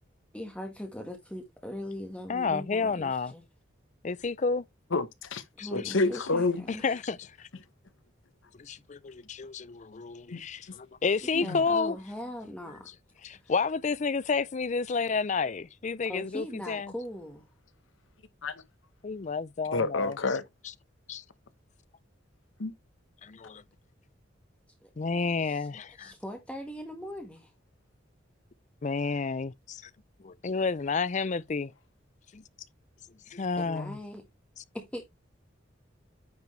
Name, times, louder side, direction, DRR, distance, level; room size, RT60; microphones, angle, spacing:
voice 1, 0.3-3.4 5.6-7.0 11.4-12.9 16.1-17.4 24.8-24.9 25.3-25.7 26.0-27.5 33.6-34.2 34.7-35.1, equal, 5° left, 1.4 m, -40 dB
voice 2, 2.3-3.3 4.0-4.6 5.6-5.7 6.7-7.5 8.6-12.0 13.2-16.9 19.0-20.2 21.1-21.2 23.2-23.6 25.0-26.1 28.8-29.8 30.2-31.7 32.3-32.4 33.3-34.0, left 4 dB, 40° left, 0.5 m, -30 dB
voice 3, 4.9-5.4 5.7-6.6 10.3-10.4 11.3-11.6 18.4-18.5 19.7-20.4 22.6-22.7, left 3 dB, 85° left, 0.9 m, -28 dB
9.4 x 4.8 x 3.2 m
head